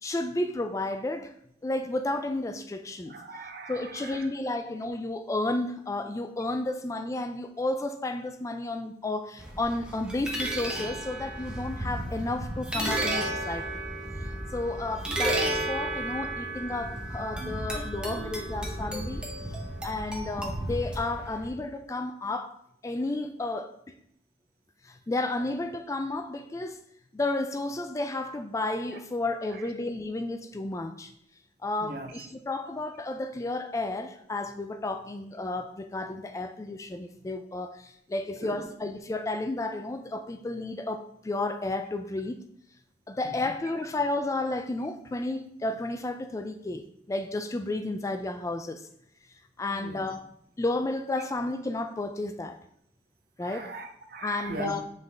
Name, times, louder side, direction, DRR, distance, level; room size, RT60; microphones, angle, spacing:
voice 1, 0.0-1.3 1.6-3.1 3.7-13.7 14.5-19.3 19.8-22.6 22.8-23.9 24.8-26.8 27.1-31.1 31.6-42.4 43.1-48.9 49.6-50.3 50.6-52.6 53.4-53.8 54.2-54.8, left 2 dB, 20° left, 0.3 m, -32 dB
voice 2, 3.1-4.3 31.8-32.1 38.4-38.6 49.7-50.1 53.4-54.8, right 3 dB, 55° right, 0.8 m, -40 dB
sound 1, 9.4-21.5, right 1 dB, 5° right, 0.9 m, -33 dB
7.5 x 3.7 x 3.4 m
head